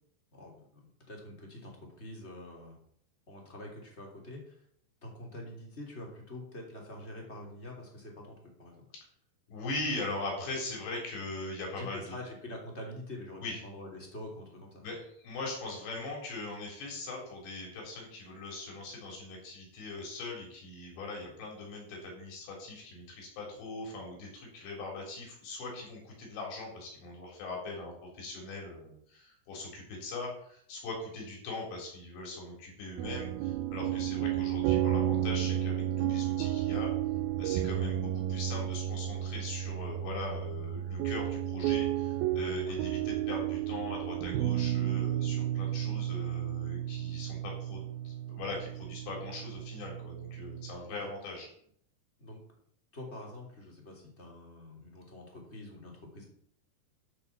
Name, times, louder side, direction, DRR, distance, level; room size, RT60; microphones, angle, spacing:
voice 1, 0.3-2.8 3.3-4.6 5.0-8.9 11.8-14.8 42.6-42.7 50.8-51.1 52.2-52.4 52.9-56.2, left 1 dB, 20° left, 0 dB, 2.6 m, -46 dB
voice 2, 9.5-12.2 13.4-13.6 14.8-36.9 37.4-51.5, left 2 dB, 75° left, 0 dB, 6.0 m, -41 dB
sound 1, 33.0-50.8, right 12 dB, 80° right, 2.3 m, -32 dB
12.5 x 6.6 x 7.1 m, 0.65 s
omnidirectional pair, 5.1 m